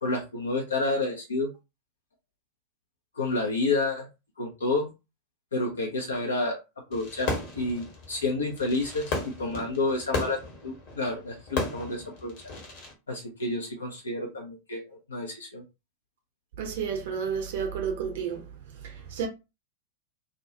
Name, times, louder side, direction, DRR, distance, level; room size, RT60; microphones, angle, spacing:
voice 1, 0.0-1.5 3.2-4.1 4.4-4.9 5.5-6.6 6.9-12.3 13.1-15.6, left 2 dB, 70° left, 0.5 m, -30 dB
Fireworks, 6.9-12.9, left 3 dB, 45° left, 1.1 m, -35 dB
voice 2, 16.6-18.4 18.8-19.3, right 7 dB, 55° right, 0.7 m, -31 dB
2.4 x 2.2 x 2.6 m
figure-of-eight pair, 90°, 0 cm